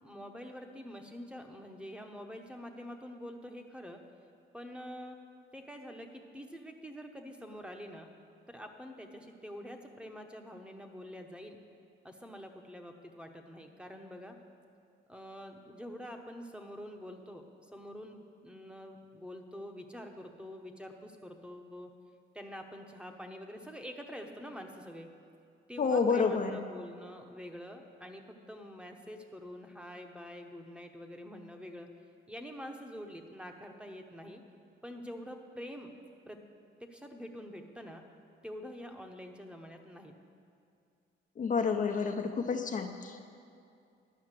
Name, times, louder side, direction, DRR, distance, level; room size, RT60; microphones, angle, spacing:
voice 1, 0.0-4.0 4.5-5.2 5.5-8.1 8.5-11.6 12.0-14.4 15.1-21.9 22.3-25.1 25.7-31.9 32.3-34.4 34.8-35.9 36.3-36.4 36.9-38.0 38.4-40.1, equal, 5° right, 4 dB, 0.9 m, -46 dB
voice 2, 25.8-26.6 41.4-43.2, left 5 dB, 40° left, 4 dB, 0.6 m, -29 dB
11.0 x 5.7 x 7.4 m, 2.4 s
cardioid pair, 90°, 20 cm